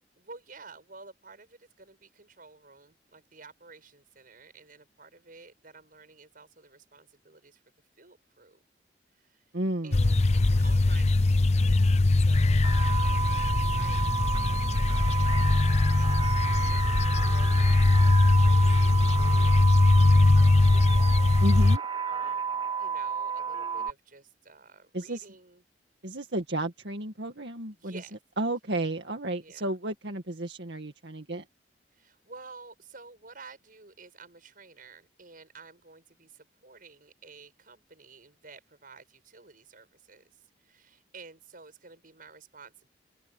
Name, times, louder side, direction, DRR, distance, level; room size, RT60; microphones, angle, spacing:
voice 1, 0.2-7.6 8.0-8.6 9.2-9.4 9.8-19.4 19.7-21.4 22.0-25.6 27.7-28.8 29.4-29.7 31.9-42.9, right 4 dB, 55° right, 6.6 m, -52 dB
voice 2, 9.5-10.1 21.4-21.8 24.9-25.3 26.0-28.0 28.4-31.5, right 1 dB, 80° right, 2.1 m, -32 dB
sound 1, 9.9-21.8, left 2 dB, 40° left, 0.6 m, -21 dB
sound 2, 12.6-23.9, right 6 dB, 25° right, 0.4 m, -32 dB
open air
head